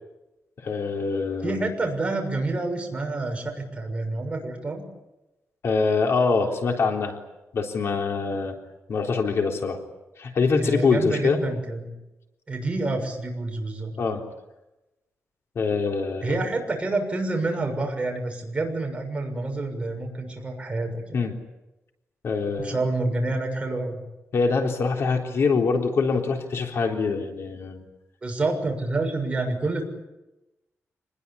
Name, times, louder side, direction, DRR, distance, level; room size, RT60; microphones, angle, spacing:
voice 1, 0.6-1.6 5.6-7.2 7.5-8.6 8.9-9.8 10.2-11.4 14.0-14.2 15.6-16.4 21.1-21.3 22.2-22.8 24.3-27.9, left 4 dB, 60° left, 2 dB, 3.7 m, -24 dB
voice 2, 1.4-4.8 10.5-11.9 12.5-13.9 16.2-21.1 22.6-24.0 28.2-29.8, right 2 dB, 20° right, 2 dB, 6.6 m, -28 dB
27.5 x 21.0 x 8.7 m, 0.98 s
wide cardioid pair, 155°, 5 cm